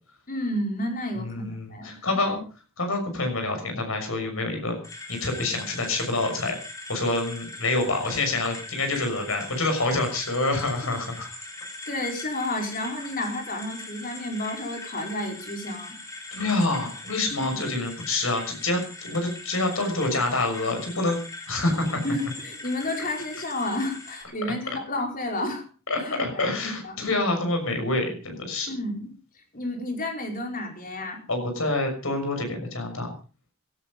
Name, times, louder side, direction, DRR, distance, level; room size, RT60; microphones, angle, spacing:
voice 1, 0.3-2.0 11.9-16.0 17.3-17.7 22.0-25.6 26.0-26.5 26.8-27.0 28.7-29.1 29.5-31.2, left 1 dB, 40° left, 3 dB, 4.7 m, -31 dB
voice 2, 1.2-2.4 2.8-4.8 5.1-6.6 6.9-11.3 16.3-21.2 21.5-22.0 25.9-28.7 31.3-33.1, left 2 dB, 70° left, 5 dB, 6.4 m, -27 dB
sound 1, 4.8-24.2, left 2 dB, 15° left, 4.2 m, -41 dB
17.5 x 13.5 x 5.3 m, 0.37 s
head